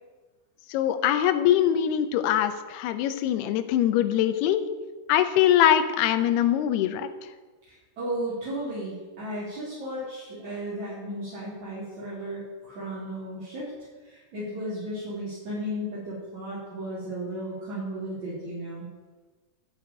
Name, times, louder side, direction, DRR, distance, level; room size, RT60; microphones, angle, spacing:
voice 1, 0.7-4.6 5.1-7.1, left 11 dB, 80° left, 9 dB, 2.7 m, -23 dB
voice 2, 8.0-13.7 14.0-18.9, right 1 dB, 45° right, -9 dB, 4.5 m, -34 dB
11.5 x 6.5 x 9.3 m, 1.3 s
omnidirectional pair, 4.8 m